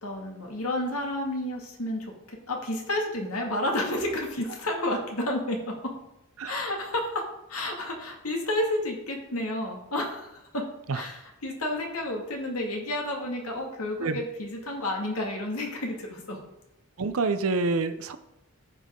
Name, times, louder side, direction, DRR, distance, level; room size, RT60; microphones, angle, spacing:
voice 1, 0.0-5.9 6.4-10.7 10.9-16.4, left 1 dB, 85° left, 1 dB, 2.1 m, -31 dB
voice 2, 17.0-18.2, right 3 dB, 75° right, 10 dB, 0.6 m, -27 dB
14.5 x 5.6 x 3.7 m, 0.87 s
head